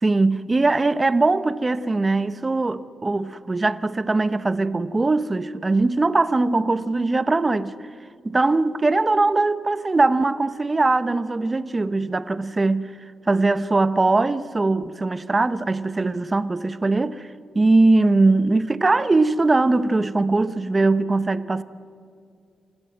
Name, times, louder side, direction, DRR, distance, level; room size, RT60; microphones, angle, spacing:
voice 1, 0.0-7.7 8.2-12.9 13.3-17.3 17.5-21.6, right 3 dB, 20° right, 0.8 m, -21 dB
27.5 x 17.0 x 7.8 m
cardioid pair, 120°, 0 cm